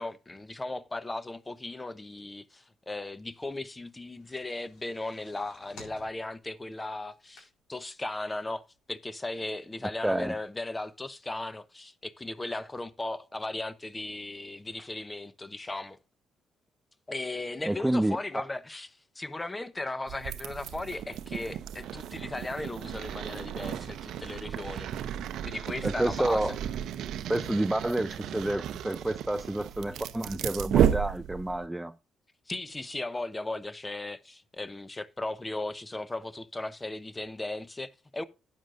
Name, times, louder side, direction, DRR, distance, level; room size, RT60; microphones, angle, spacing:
voice 1, 0.0-8.6 8.9-16.0 17.1-18.9 19.1-24.9 25.4-26.4 32.5-38.2, left 2 dB, 20° left, 0.8 m, -37 dB
sound 1, 4.1-7.9 8.3-8.4 8.7-8.8, left 2 dB, 70° left, 4.3 m, -54 dB
voice 2, 10.0-10.4 17.6-18.4 25.8-26.6 27.3-31.9, right 1 dB, 10° right, 0.5 m, -29 dB
sound 2, 20.1-31.7, right 10 dB, 70° right, 0.6 m, -33 dB
12.0 x 9.3 x 2.5 m
supercardioid pair, 60°, 0 cm